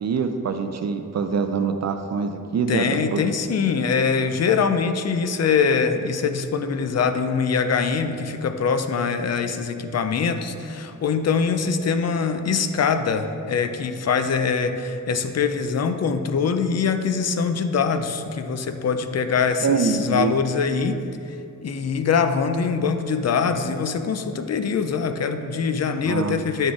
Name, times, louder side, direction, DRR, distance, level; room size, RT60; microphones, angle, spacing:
voice 1, 0.0-3.2 19.6-20.3 26.1-26.4, right 5 dB, 55° right, 7 dB, 0.4 m, -24 dB
voice 2, 2.7-21.0 21.6-26.7, left 5 dB, 50° left, 8 dB, 0.5 m, -23 dB
9.8 x 4.1 x 4.8 m, 2.6 s
wide cardioid pair, 160°, 33 cm